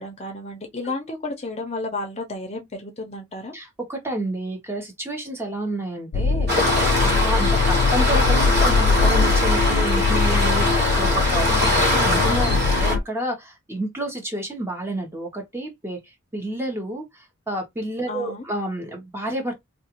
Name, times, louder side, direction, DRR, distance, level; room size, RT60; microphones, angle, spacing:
voice 1, 0.0-3.5 18.1-18.5, left 2 dB, 35° left, 0.6 m, -32 dB
voice 2, 3.5-16.0 16.3-19.5, right 1 dB, 10° right, 0.8 m, -30 dB
sound 1, 6.1-13.0, left 4 dB, 70° left, 0.3 m, -21 dB
Waves surf, 6.5-12.9, left 1 dB, 55° right, 1.3 m, -22 dB
2.4 x 2.3 x 2.8 m
head